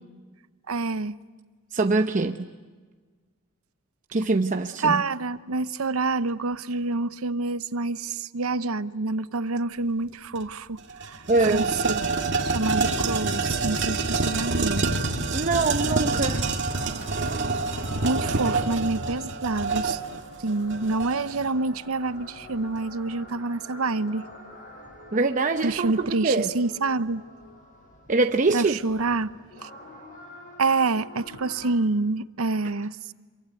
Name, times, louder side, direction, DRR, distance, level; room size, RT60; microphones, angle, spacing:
voice 1, 0.7-1.2 4.8-12.0 12.4-14.8 18.0-20.0 20.4-24.3 25.6-27.2 28.5-29.7 30.6-33.1, right 3 dB, 85° right, 0.8 m, -27 dB
voice 2, 1.7-2.5 4.1-5.0 11.3-11.7 15.3-16.4 25.1-25.9 26.2-26.5 28.1-28.8, right 3 dB, 35° right, 0.8 m, -23 dB
sound 1, 10.4-10.5 10.8-21.5, right 3 dB, 55° right, 2.0 m, -27 dB
sound 2, 14.2-31.7, left 2 dB, 40° left, 6.5 m, -46 dB
27.0 x 23.5 x 9.2 m
head